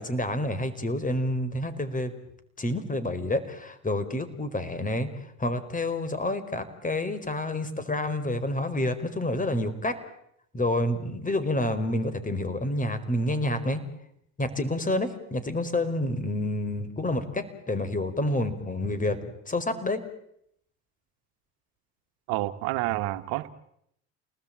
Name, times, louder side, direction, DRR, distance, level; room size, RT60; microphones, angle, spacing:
voice 1, 0.0-2.1 2.6-5.1 5.4-9.9 10.5-13.8 14.4-20.1, left 1 dB, 20° left, 12 dB, 4.8 m, -28 dB
voice 2, 22.3-23.5, right 18 dB, 70° right, 11 dB, 1.6 m, -29 dB
29.5 x 19.5 x 8.9 m, 0.75 s
hypercardioid pair, 80°, 37 cm